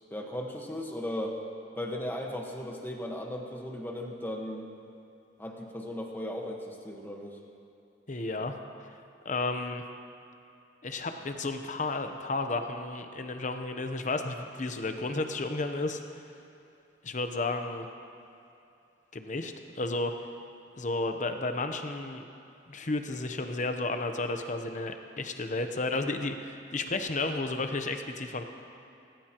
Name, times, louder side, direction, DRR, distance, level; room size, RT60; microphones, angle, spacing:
voice 1, 0.1-1.4 1.8-4.7 5.4-7.4, left 1 dB, 10° left, 0 dB, 1.3 m, -36 dB
voice 2, 8.1-8.6 9.2-9.8 10.8-16.0 17.0-17.9 19.1-20.2 20.8-22.2 22.7-28.4, left 2 dB, 40° left, 6 dB, 0.9 m, -32 dB
18.0 x 18.0 x 3.0 m, 2.7 s
head